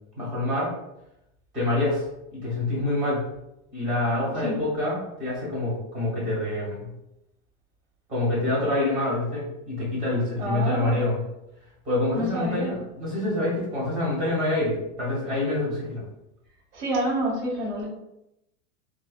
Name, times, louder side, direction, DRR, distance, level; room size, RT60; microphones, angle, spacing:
voice 1, 0.2-0.7 1.5-2.0 2.3-3.2 3.7-6.9 8.1-11.2 11.8-16.0, left 2 dB, 20° right, -6 dB, 1.0 m, -26 dB
voice 2, 10.4-11.0 12.1-12.7 16.7-17.8, right 1 dB, 65° right, -5 dB, 1.5 m, -28 dB
3.1 x 2.1 x 2.2 m, 0.85 s
supercardioid pair, 175°, 38 cm